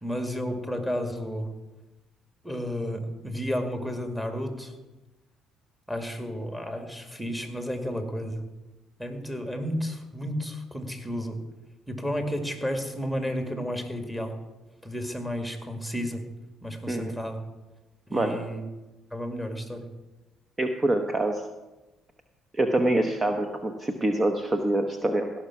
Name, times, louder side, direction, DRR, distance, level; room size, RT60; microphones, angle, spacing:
voice 1, 0.0-1.5 2.4-4.7 5.9-8.4 9.0-11.4 11.9-14.4 14.8-16.2 16.6-17.4 18.1-18.6 19.1-19.8, equal, 5° right, 5 dB, 2.1 m, -32 dB
voice 2, 20.6-21.5 22.5-25.3, right 1 dB, 25° right, 6 dB, 1.0 m, -25 dB
16.5 x 6.0 x 6.0 m, 1.1 s
supercardioid pair, 65°, 0 cm